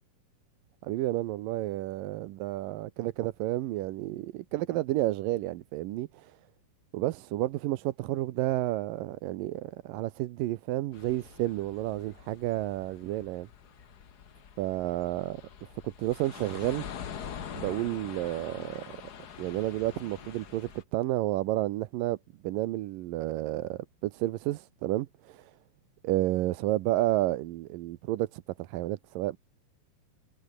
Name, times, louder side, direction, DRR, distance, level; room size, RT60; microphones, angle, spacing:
voice 1, 0.8-6.4 6.9-13.5 14.6-16.9 17.5-18.8 19.4-22.2 22.4-25.5 26.0-29.4, right 16 dB, 85° right, 2.6 m, -31 dB
sound 1, 10.9-20.8, left 8 dB, 70° left, 0.9 m, -45 dB
omnidirectional pair, 3.9 m